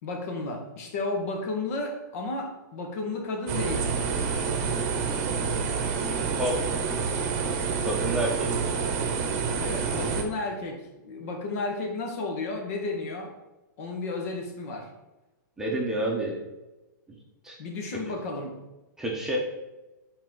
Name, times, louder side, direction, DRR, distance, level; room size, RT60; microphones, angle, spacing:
voice 1, 0.0-3.9 9.6-13.3 13.8-14.9 17.6-18.6, left 3 dB, 50° left, 3 dB, 1.4 m, -33 dB
sound 1, 3.5-10.2, right 5 dB, 40° right, 0.9 m, -28 dB
voice 2, 7.8-8.5 15.6-16.4 17.4-17.6 19.0-19.4, right 1 dB, 5° right, -2 dB, 0.9 m, -28 dB
7.3 x 4.5 x 3.9 m, 1.1 s
hypercardioid pair, 155°, 10 cm